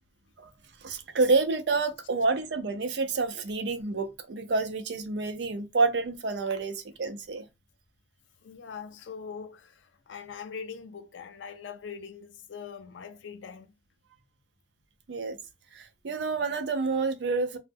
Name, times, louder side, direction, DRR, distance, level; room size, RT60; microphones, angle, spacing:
voice 1, 0.8-7.5 15.1-15.4 15.7-17.6, right 3 dB, 65° right, 0.5 m, -28 dB
voice 2, 8.4-13.7, left 6 dB, 90° left, 0.4 m, -42 dB
2.0 x 2.0 x 3.4 m
head